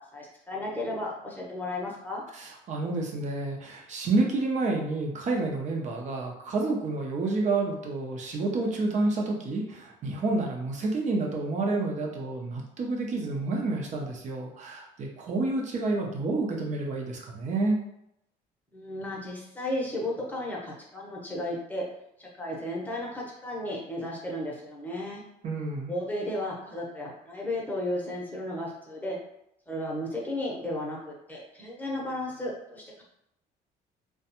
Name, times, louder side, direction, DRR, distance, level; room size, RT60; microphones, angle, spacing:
voice 1, 0.0-2.2 18.7-21.8 22.2-25.2 25.9-29.2 29.7-33.0, left 1 dB, 10° left, -4 dB, 0.8 m, -34 dB
voice 2, 2.3-17.8 25.4-25.9, right 3 dB, 45° right, 0 dB, 0.6 m, -29 dB
2.3 x 2.2 x 2.8 m, 0.79 s
cardioid pair, 110°, 17 cm